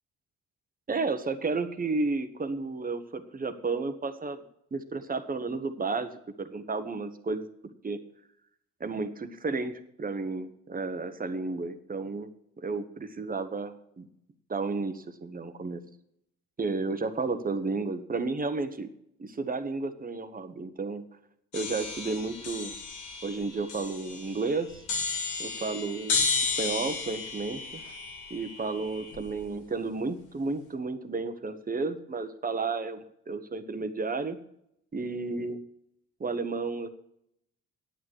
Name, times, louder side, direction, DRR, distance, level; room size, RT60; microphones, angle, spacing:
voice 1, 0.9-4.4 4.7-6.1 6.4-7.5 7.8-8.0 8.8-12.3 12.6-14.1 14.5-15.8 16.6-18.9 19.2-21.0 21.5-22.8 23.2-24.8 25.4-27.8 28.3-34.4 34.9-35.6 36.2-36.9, right 3 dB, 30° right, 10 dB, 1.2 m, -32 dB
sound 1, 21.5-29.5, left 4 dB, 80° left, 2.3 m, -33 dB
9.2 x 8.8 x 6.4 m, 0.76 s
cardioid pair, 90°, 30 cm